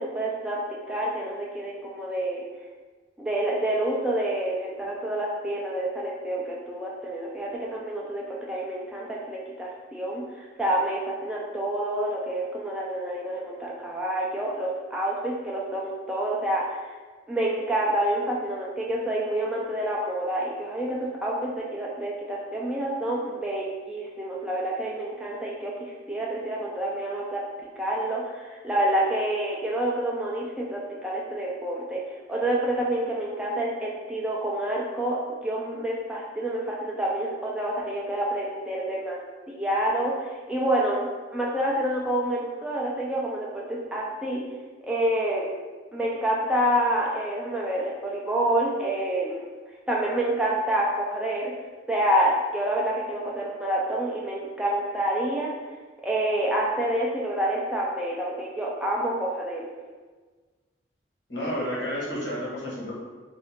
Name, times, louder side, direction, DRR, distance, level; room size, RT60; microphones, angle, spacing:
voice 1, 0.0-2.4 3.2-16.9 17.3-27.4 27.8-32.0 32.3-39.2 39.5-41.1 41.3-44.4 44.8-45.5 45.9-49.4 49.9-51.5 51.9-55.5 56.0-59.7, right 1 dB, 5° right, -4 dB, 0.4 m, -28 dB
voice 2, 61.3-62.9, equal, 75° left, -5 dB, 1.4 m, -31 dB
3.4 x 2.6 x 3.6 m, 1.4 s
head